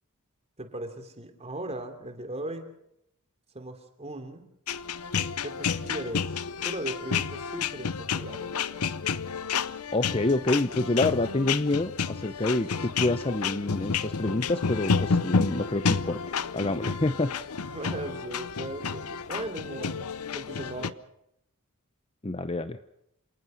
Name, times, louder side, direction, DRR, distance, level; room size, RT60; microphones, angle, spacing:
voice 1, 0.6-2.7 3.5-4.4 5.4-8.5 17.7-20.1 20.3-20.9, right 1 dB, 30° right, 7 dB, 3.1 m, -38 dB
sound 1, 4.7-20.9, left 5 dB, 85° left, 0.8 m, -30 dB
voice 2, 9.9-17.3 22.2-22.8, left 2 dB, 25° left, 11 dB, 0.8 m, -27 dB
27.0 x 19.0 x 6.4 m, 0.76 s
head